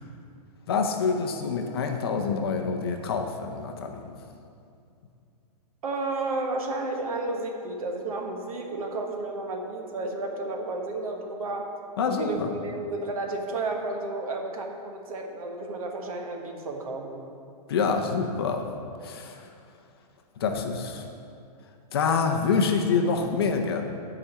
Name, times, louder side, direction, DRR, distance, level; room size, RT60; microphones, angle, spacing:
voice 1, 0.7-4.1 12.0-12.5 17.7-18.6 19.0-19.3 20.4-21.0 21.9-23.8, left 5 dB, 35° left, 3 dB, 0.6 m, -26 dB
voice 2, 5.8-11.7 12.2-17.2, right 2 dB, 60° right, 2 dB, 1.3 m, -32 dB
8.4 x 4.9 x 7.0 m, 2.5 s
hypercardioid pair, 175°, 21 cm